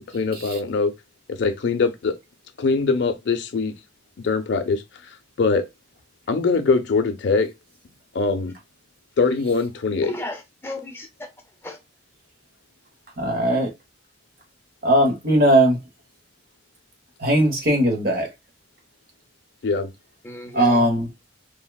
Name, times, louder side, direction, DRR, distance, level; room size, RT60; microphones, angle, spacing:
voice 1, 0.1-0.9 1.3-2.2 2.6-3.7 4.2-4.8 5.4-5.7 6.3-7.5 8.1-8.5 9.2-10.1 19.6-19.9, left 4 dB, 70° left, 0.5 m, -22 dB
voice 2, 10.0-11.3 11.6-11.8 20.2-20.9, left 2 dB, 10° left, 0.5 m, -34 dB
voice 3, 13.2-13.7 14.8-15.8 17.2-18.3 20.5-21.1, right 1 dB, 50° right, 0.8 m, -18 dB
3.2 x 2.1 x 2.2 m
head